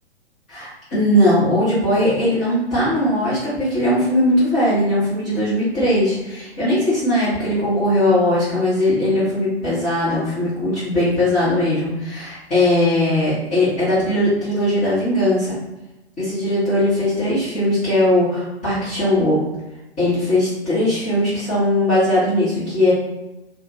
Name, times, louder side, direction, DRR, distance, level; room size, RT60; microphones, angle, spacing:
voice 1, 0.5-15.6 16.2-19.4 20.0-22.9, left 1 dB, 20° left, -13 dB, 1.5 m, -19 dB
2.7 x 2.5 x 4.0 m, 0.98 s
figure-of-eight pair, 115°, 34 cm